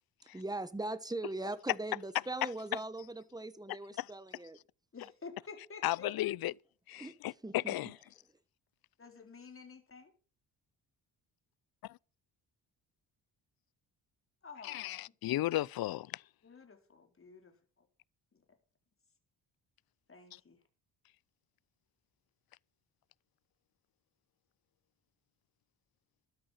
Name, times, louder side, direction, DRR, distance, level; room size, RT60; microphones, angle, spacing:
voice 1, 0.3-4.6 7.0-7.1 7.4-7.7, right 2 dB, 10° right, 1.1 m, -40 dB
voice 2, 4.9-6.1 9.0-10.1 14.4-15.0 16.4-17.5 20.1-20.6, left 4 dB, 30° left, 4.1 m, -51 dB
voice 3, 5.8-6.5 6.9-8.0 11.8-12.0 14.6-16.2, left 15 dB, 60° left, 0.5 m, -35 dB
12.5 x 10.5 x 5.8 m
cardioid pair, 105°, 42 cm